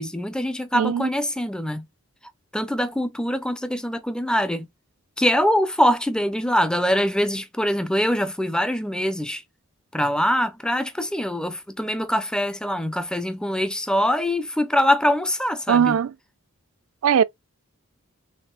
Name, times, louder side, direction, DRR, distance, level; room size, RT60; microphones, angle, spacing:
voice 1, 0.0-1.8 2.5-4.7 5.2-9.4 9.9-16.0, equal, 5° left, 0.4 m, -23 dB
voice 2, 0.7-1.1 15.7-16.1 17.0-17.2, right 8 dB, 65° right, 0.3 m, -19 dB
4.2 x 3.5 x 2.3 m
head